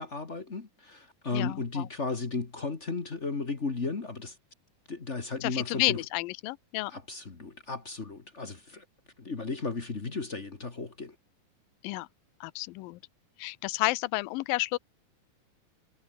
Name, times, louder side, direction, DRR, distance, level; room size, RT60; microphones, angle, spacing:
voice 1, 0.0-4.3 4.9-6.0 6.9-8.8 9.2-11.1, left 4 dB, 35° left, 1.1 m, -35 dB
voice 2, 1.3-1.9 5.4-6.9 11.8-12.1 12.4-13.0 13.4-14.8, left 20 dB, 75° left, 2.3 m, -31 dB
omnidirectional pair, 4.4 m